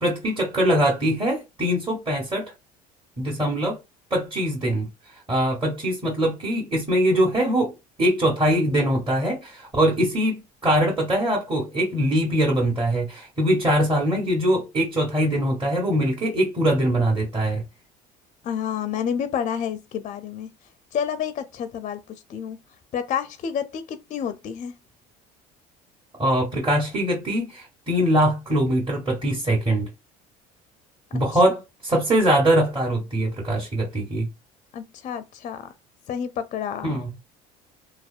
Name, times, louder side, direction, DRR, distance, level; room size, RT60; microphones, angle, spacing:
voice 1, 0.0-2.5 3.2-3.8 4.1-4.9 5.3-17.6 26.2-29.9 31.1-34.3 36.8-37.1, right 1 dB, 25° right, 1.3 m, -22 dB
voice 2, 18.4-20.5 20.9-22.0 22.3-22.6 22.9-24.7 34.7-35.7 36.1-37.0, left 8 dB, 40° left, 0.4 m, -29 dB
2.6 x 2.0 x 2.4 m
supercardioid pair, 80°, 19 cm